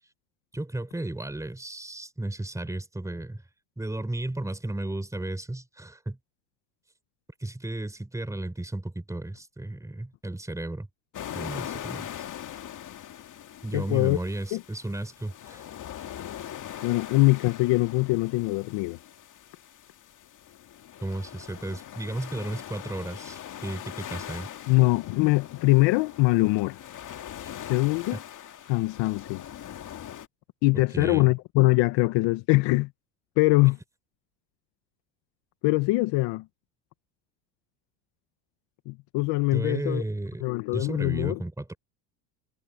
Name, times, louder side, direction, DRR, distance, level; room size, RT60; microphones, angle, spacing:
voice 1, 0.5-3.4 3.8-6.2 7.4-10.9 11.3-12.3 13.6-15.6 21.0-24.5 28.1-28.2 30.9-31.3 39.5-40.4 40.7-41.8, right 1 dB, 5° right, 4.2 m, -34 dB
sound 1, 11.1-30.3, left 10 dB, 40° left, 2.3 m, -41 dB
voice 2, 13.7-14.2 14.5-14.6 16.8-19.0 24.7-26.8 27.7-28.2 28.7-29.4 30.6-32.9 33.4-33.8 35.6-36.4 38.9-40.0 40.4-41.4, left 22 dB, 60° left, 1.5 m, -23 dB
supercardioid pair, 95°, 48 cm